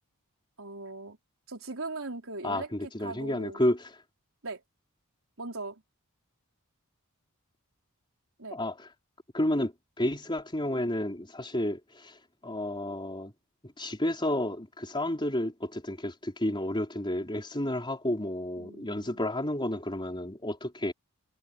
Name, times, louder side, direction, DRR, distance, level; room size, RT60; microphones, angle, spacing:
voice 1, 0.6-1.2 1.5-3.6 4.4-4.6 5.4-5.8 8.4-8.6 18.6-19.3, right 2 dB, 65° right, 4.8 m, -40 dB
voice 2, 2.4-3.9 8.5-8.9 9.3-13.3 13.8-20.9, left 1 dB, 20° left, 4.1 m, -31 dB
head